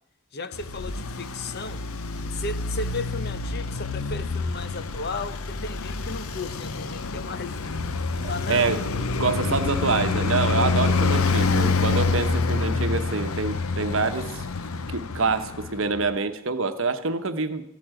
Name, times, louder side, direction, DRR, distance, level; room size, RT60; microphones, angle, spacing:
voice 1, 0.3-1.9 2.3-7.6 8.3-9.0, left 3 dB, 45° left, 0.8 m, -35 dB
Traffic noise roadway noise, 0.5-16.0, left 3 dB, 75° left, 0.8 m, -27 dB
voice 2, 8.2-14.4 14.9-17.6, right 4 dB, 60° right, 1.1 m, -26 dB
15.0 x 8.5 x 9.0 m
head